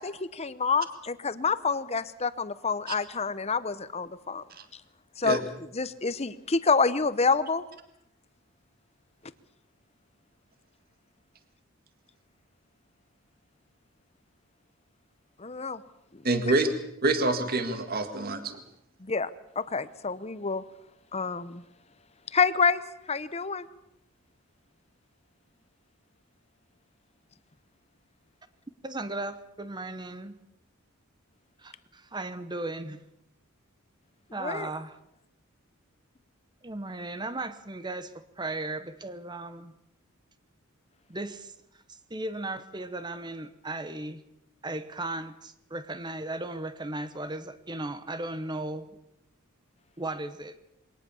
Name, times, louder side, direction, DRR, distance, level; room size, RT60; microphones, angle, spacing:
voice 1, 0.0-4.4 5.2-5.4 5.7-7.6 15.4-15.8 16.1-16.2 19.0-19.3 19.6-20.6 21.1-21.6 22.3-22.8 23.1-23.7 34.4-34.7, left 4 dB, 30° left, 0.9 m, -27 dB
voice 2, 16.2-16.7 17.0-18.6, right 2 dB, 45° right, 1.9 m, -26 dB
voice 3, 28.8-30.4 31.6-33.0 34.3-34.9 36.6-39.7 41.1-41.5 41.9-44.2 44.6-48.9 50.0-50.6, right 2 dB, 20° right, 0.9 m, -36 dB
22.5 x 18.5 x 7.1 m
head